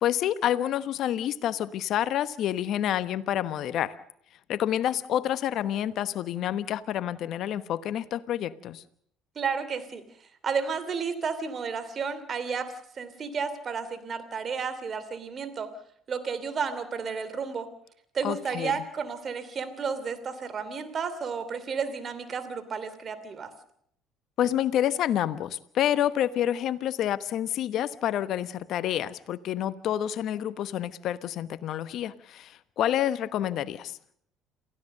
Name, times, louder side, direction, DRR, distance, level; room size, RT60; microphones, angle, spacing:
voice 1, 0.0-4.0 4.5-8.8 18.2-18.8 24.4-34.0, left 11 dB, 60° left, 15 dB, 1.1 m, -28 dB
voice 2, 9.3-10.0 10.4-15.7 16.1-17.7 18.1-23.5, right 5 dB, 45° right, 12 dB, 2.9 m, -32 dB
28.0 x 15.5 x 6.7 m, 0.69 s
hypercardioid pair, 60°, 0 cm